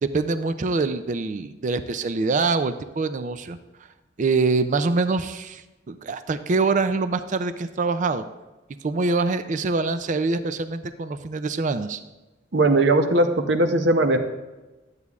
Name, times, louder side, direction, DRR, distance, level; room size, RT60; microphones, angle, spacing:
voice 1, 0.0-3.6 4.2-8.2 8.8-12.0, right 3 dB, 40° right, 11 dB, 0.4 m, -24 dB
voice 2, 12.5-14.2, right 2 dB, 60° right, 6 dB, 0.8 m, -19 dB
12.5 x 8.1 x 2.4 m, 1.1 s
head